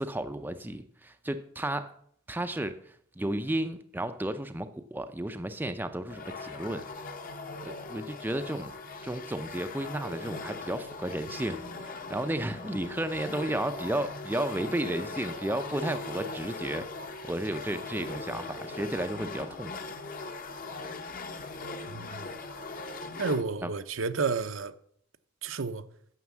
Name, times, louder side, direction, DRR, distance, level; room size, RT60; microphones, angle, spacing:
voice 1, 0.0-1.9 2.3-7.1 7.6-8.7 9.0-16.9 17.2-19.8 23.6-23.7, right 1 dB, 10° right, 0.5 m, -33 dB
sound 1, 6.1-23.4, left 3 dB, 40° left, 1.0 m, -40 dB
voice 2, 21.9-22.3 23.2-24.7 25.4-25.8, right 4 dB, 75° right, 0.7 m, -31 dB
9.5 x 6.5 x 7.2 m
head